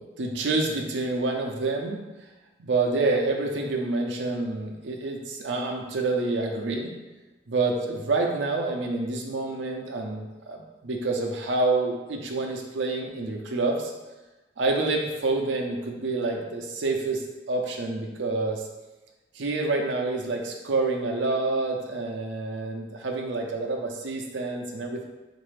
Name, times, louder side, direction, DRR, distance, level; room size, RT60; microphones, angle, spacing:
voice 1, 0.0-2.0 2.6-6.9 7.5-13.9 14.6-18.7 19.3-25.1, right 3 dB, 85° right, 1 dB, 0.5 m, -28 dB
3.9 x 2.6 x 3.2 m, 1.1 s
head